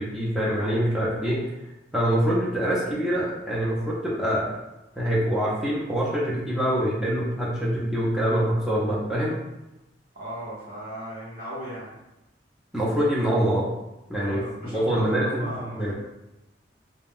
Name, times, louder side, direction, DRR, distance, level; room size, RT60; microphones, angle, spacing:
voice 1, 0.0-1.4 1.9-4.5 5.0-9.4 12.7-13.7 14.1-14.4 14.7-15.9, equal, ahead, -7 dB, 0.4 m, -25 dB
voice 2, 10.1-11.9 14.2-15.9, equal, 50° right, -9 dB, 0.9 m, -36 dB
2.4 x 2.1 x 3.5 m, 0.95 s
head